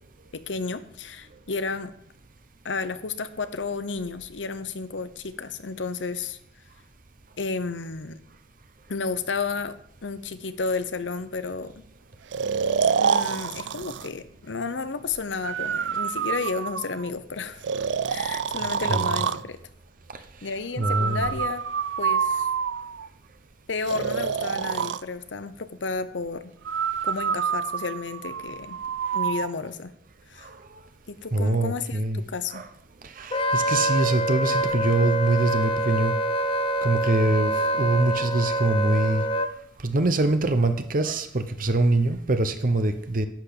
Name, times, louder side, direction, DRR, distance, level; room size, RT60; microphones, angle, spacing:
voice 1, 0.3-1.9 2.6-6.4 7.4-8.2 8.9-11.7 13.0-17.6 18.1-19.6 20.4-21.6 22.0-22.5 23.7-26.5 27.0-28.8 29.1-29.9 30.3-30.5 31.1-32.6, left 4 dB, 90° left, 12 dB, 0.9 m, -32 dB
Breathing, 12.3-14.1 15.4-17.1 17.6-19.4 20.8-23.1 23.9-25.0 26.6-29.5, right 6 dB, 80° right, 0.5 m, -27 dB
voice 2, 20.8-21.3 30.4-30.6 31.3-32.2 32.5-32.7 33.0-36.1 36.8-39.2 39.8-43.3, right 2 dB, 50° right, 8 dB, 0.9 m, -24 dB
Wind instrument woodwind instrument, 33.3-39.5, right 1 dB, 30° left, 0.7 m, -25 dB
10.5 x 6.1 x 8.6 m, 0.71 s
head